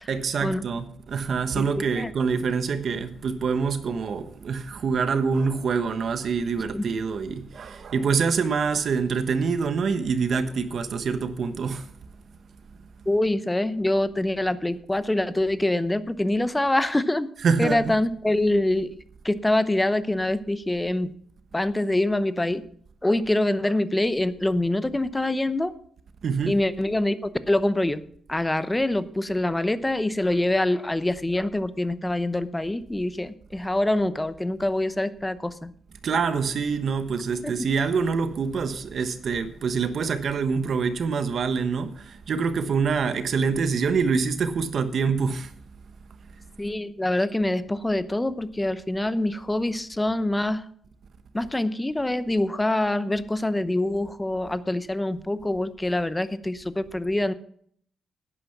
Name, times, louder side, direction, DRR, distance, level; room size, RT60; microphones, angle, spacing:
voice 1, 0.1-11.9 17.4-17.9 26.2-26.6 36.0-45.5, right 5 dB, 55° right, 1.2 m, -25 dB
voice 2, 1.6-2.1 6.7-6.8 13.1-17.3 17.6-19.0 19.2-21.1 21.5-22.6 23.0-25.7 26.5-28.0 28.3-35.7 46.6-50.7 51.3-57.3, left 1 dB, 10° left, 0.8 m, -25 dB
11.5 x 9.9 x 5.9 m
cardioid pair, 110°, 0 cm